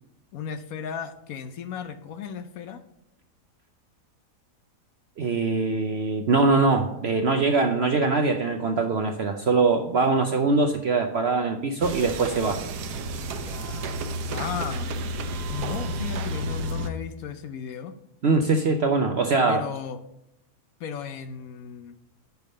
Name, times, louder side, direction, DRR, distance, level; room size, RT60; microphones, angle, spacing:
voice 1, 0.3-2.8 13.2-13.9 14.3-14.9 15.5-17.9 19.5-20.0 20.8-22.0, left 7 dB, 65° left, 9 dB, 1.0 m, -35 dB
voice 2, 5.2-12.6 18.2-19.6, right 3 dB, 60° right, 5 dB, 0.7 m, -22 dB
sound 1, 11.8-16.9, right 1 dB, 75° right, 1.3 m, -31 dB
10.5 x 3.6 x 6.6 m, 0.85 s
omnidirectional pair, 1.8 m